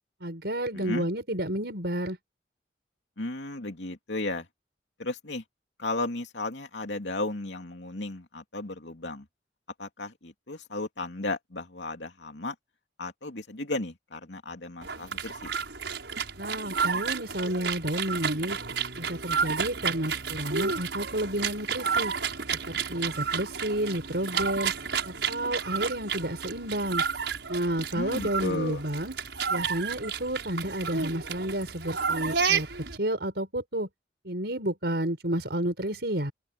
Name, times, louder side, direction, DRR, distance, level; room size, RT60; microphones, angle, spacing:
voice 1, 0.2-2.2 16.4-18.6 18.9-22.1 22.7-24.7 25.0-27.0 27.5-29.2 29.5-32.7 32.9-33.9 34.2-36.3, right 1 dB, 65° right, 5.7 m, -31 dB
voice 2, 0.7-1.1 3.2-4.5 5.0-5.4 5.8-9.2 9.8-12.5 13.0-15.5 27.9-28.8, left 2 dB, 85° left, 2.8 m, -34 dB
sound 1, 14.8-33.0, right 6 dB, 80° right, 6.2 m, -31 dB
open air
head